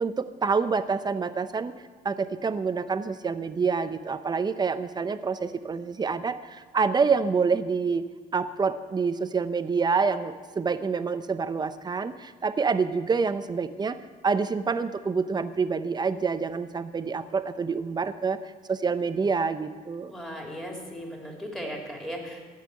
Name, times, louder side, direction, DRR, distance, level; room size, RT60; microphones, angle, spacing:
voice 1, 0.0-1.7 2.0-8.0 8.3-14.0 14.2-18.4 18.7-20.1, right 5 dB, 25° right, 11 dB, 0.7 m, -27 dB
voice 2, 20.1-22.4, equal, 5° left, 0 dB, 3.1 m, -37 dB
15.5 x 5.8 x 9.8 m, 1.5 s
cardioid pair, 110°, 17 cm